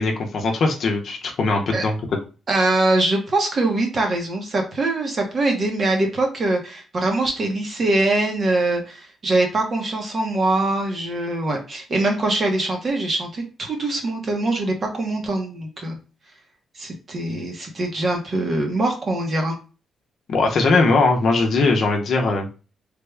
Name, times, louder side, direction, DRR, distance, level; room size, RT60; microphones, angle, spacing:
voice 1, 0.0-2.0 20.3-22.5, left 3 dB, 55° left, 2 dB, 0.7 m, -20 dB
voice 2, 2.5-16.0 16.8-19.6, right 2 dB, 35° right, 3 dB, 0.9 m, -23 dB
3.4 x 2.3 x 3.2 m, 0.34 s
cardioid pair, 140°, 0 cm